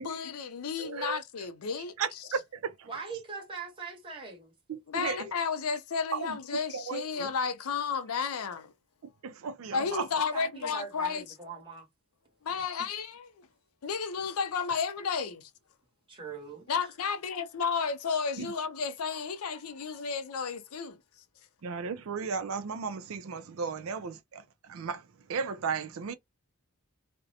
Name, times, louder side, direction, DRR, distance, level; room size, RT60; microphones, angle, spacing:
voice 1, 0.0-2.0 4.9-8.7 9.7-11.2 12.4-13.5 13.8-15.5 16.7-21.0, left 5 dB, 85° left, 0.5 m, -32 dB
voice 2, 0.8-1.2 2.0-2.9 4.7-5.3 6.1-6.4 6.7-7.3 9.2-10.1 18.4-18.5 21.6-26.1, right 5 dB, 70° right, 0.4 m, -35 dB
voice 3, 2.9-4.5 10.2-11.9 12.8-12.9 16.1-16.8, right 5 dB, 25° right, 1.0 m, -42 dB
2.5 x 2.1 x 2.7 m
head